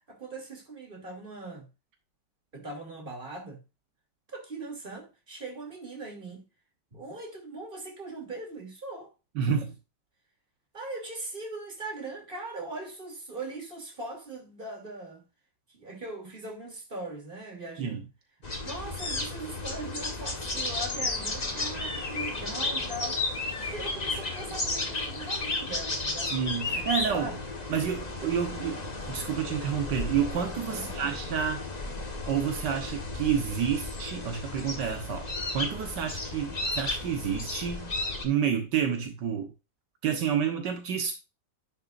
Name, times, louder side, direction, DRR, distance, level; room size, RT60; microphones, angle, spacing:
voice 1, 0.0-1.7 2.5-3.6 4.3-6.5 6.9-9.1 9.5-9.6 10.7-15.3 15.7-18.1 18.6-23.2 23.6-26.4 26.9-27.4 30.7-31.1, right 2 dB, 30° right, 3.0 m, -40 dB
voice 2, 9.3-9.8 17.8-18.0 26.3-27.3 27.7-31.6 32.3-35.3 35.5-37.9 38.2-39.5 40.0-41.1, right 8 dB, 75° right, 1.8 m, -29 dB
sound 1, 18.4-38.2, left 2 dB, 25° left, 1.4 m, -33 dB
10.5 x 6.6 x 2.6 m
omnidirectional pair, 1.9 m